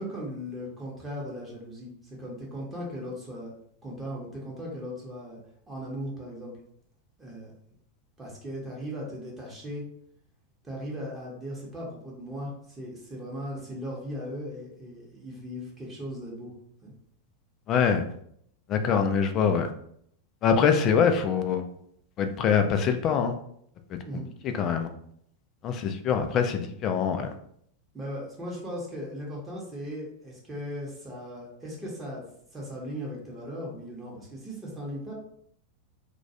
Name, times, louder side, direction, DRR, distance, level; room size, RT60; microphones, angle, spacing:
voice 1, 0.0-3.5 3.8-5.4 5.7-6.5 7.2-7.5 8.2-9.9 10.6-16.5 16.8-16.9 24.1-24.3 27.9-32.2 32.5-35.1, equal, 15° right, -4 dB, 0.8 m, -38 dB
voice 2, 17.7-18.0 18.7-19.7 20.4-21.7 22.2-23.3 23.9-24.0 24.4-24.9 25.6-27.3, left 6 dB, 35° left, 7 dB, 0.3 m, -24 dB
2.2 x 2.2 x 2.7 m, 0.68 s
figure-of-eight pair, 90°, 0 cm